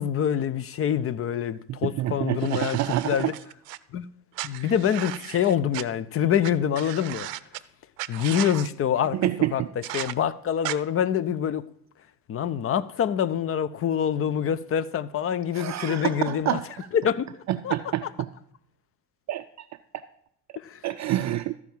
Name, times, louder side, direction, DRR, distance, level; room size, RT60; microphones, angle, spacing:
voice 1, 0.0-2.8 3.0-3.3 3.9-4.0 4.4-7.3 8.1-9.2 9.5-9.6 9.9-11.6 12.3-16.6 16.9-17.3 17.6-17.8 20.6-20.8, left 9 dB, 30° left, 0.5 m, -25 dB
voice 2, 1.7-3.3 9.1-9.7 15.5-16.9 17.5-18.3 19.3-19.4 20.8-21.5, right 14 dB, 35° right, 0.5 m, -27 dB
sound 1, 2.4-3.8 4.3-5.8 6.4-6.5 6.7-7.6 8.0-8.7 9.8-10.1 10.6-10.8, right 16 dB, 80° right, 0.6 m, -35 dB
13.5 x 4.7 x 7.2 m
hypercardioid pair, 75°, 48 cm